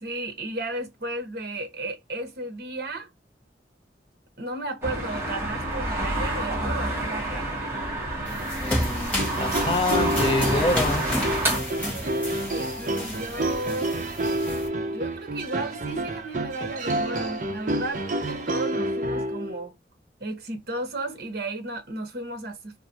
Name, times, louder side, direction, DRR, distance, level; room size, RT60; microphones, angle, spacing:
voice 1, 0.0-3.1 4.4-7.5 12.5-14.0 14.9-18.1 18.4-19.8 20.2-22.8, right 2 dB, 60° right, 0.9 m, -34 dB
sound 1, 4.8-11.6, right 2 dB, 15° right, 1.1 m, -28 dB
sound 2, 8.2-14.7, left 1 dB, 10° left, 0.9 m, -31 dB
voice 2, 8.6-11.0, left 2 dB, 30° left, 0.4 m, -26 dB
sound 3, 9.2-19.6, right 1 dB, 45° right, 0.6 m, -29 dB
2.5 x 2.4 x 4.0 m
head